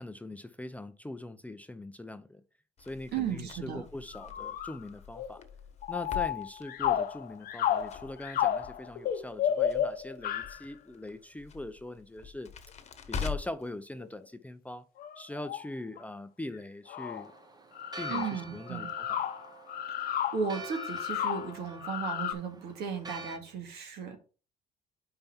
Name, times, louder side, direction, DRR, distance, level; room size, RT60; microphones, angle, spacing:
voice 1, 0.0-2.4 2.8-5.4 5.9-12.5 13.1-14.9 15.2-17.3 18.0-19.1, left 1 dB, 10° left, 0.5 m, -41 dB
Crackle, 2.8-13.7, left 6 dB, 40° left, 1.1 m, -44 dB
voice 2, 3.1-3.8 18.1-18.9 19.9-24.2, right 6 dB, 70° right, 2.2 m, -35 dB
sound 1, 4.1-4.8 5.1-5.4 5.8-10.6 14.0-14.1 15.0-15.7 16.0-16.1 16.5-16.6 16.9-17.3 17.8-22.3, left 10 dB, 60° left, 0.8 m, -32 dB
Church bell, 17.0-23.4, right 4 dB, 25° right, 1.0 m, -47 dB
5.4 x 4.4 x 5.5 m
cardioid pair, 110°, 17 cm